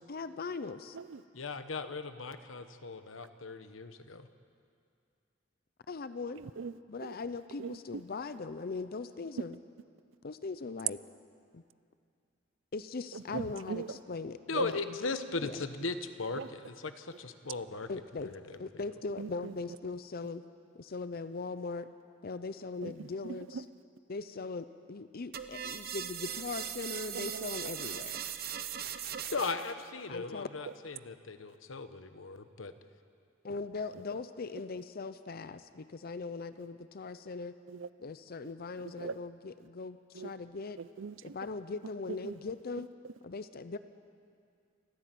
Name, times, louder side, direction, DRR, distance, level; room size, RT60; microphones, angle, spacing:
voice 1, 0.1-1.0 5.9-6.4 6.9-9.6 10.2-11.0 11.5-11.6 12.7-14.8 15.4-15.6 17.9-18.3 18.6-20.4 20.7-21.9 22.2-23.6 24.1-28.2 30.1-30.5 33.4-37.6 38.0-40.8 41.2-42.9 43.2-43.8, left 4 dB, 50° left, 12 dB, 0.6 m, -40 dB
voice 2, 1.3-4.3 14.5-17.9 18.2-18.6 29.3-32.7, left 3 dB, 80° left, 10 dB, 1.1 m, -38 dB
voice 3, 6.4-6.7 7.0-7.1 7.6-8.0 13.1-14.0 14.5-14.7 16.4-16.5 19.2-19.5 22.8-22.9 23.2-23.6 27.1-27.5 33.9-34.0 37.7-37.9 38.8-39.2 40.1-40.3 40.8-41.3 42.2-42.4, right 5 dB, 70° right, 16 dB, 0.5 m, -40 dB
sound 1, 25.3-29.7, right 9 dB, 50° right, 0.9 m, -39 dB
28.5 x 10.5 x 9.2 m, 2.4 s
head